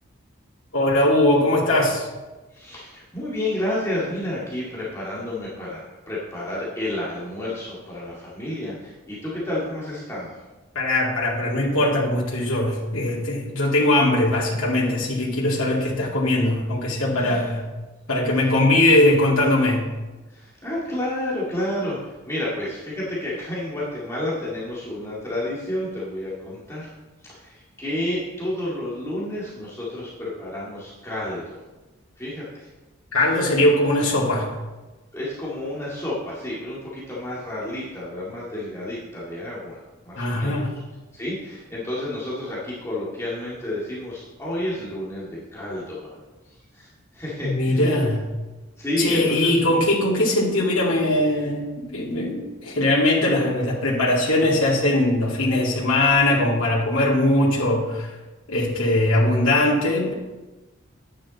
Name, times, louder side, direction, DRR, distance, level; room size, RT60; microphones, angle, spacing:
voice 1, 0.7-2.1 10.7-17.6 18.1-19.9 33.1-34.5 40.2-40.7 47.4-48.2 49.0-58.1 58.5-60.1, left 1 dB, 90° left, -5 dB, 2.1 m, -20 dB
voice 2, 2.5-10.4 17.1-17.5 20.3-26.9 27.2-31.6 32.2-32.7 35.1-40.6 41.1-46.2 46.7-47.9 48.8-49.6 50.3-50.4, left 1 dB, 15° left, -8 dB, 2.0 m, -30 dB
10.0 x 9.0 x 4.1 m, 1.2 s
head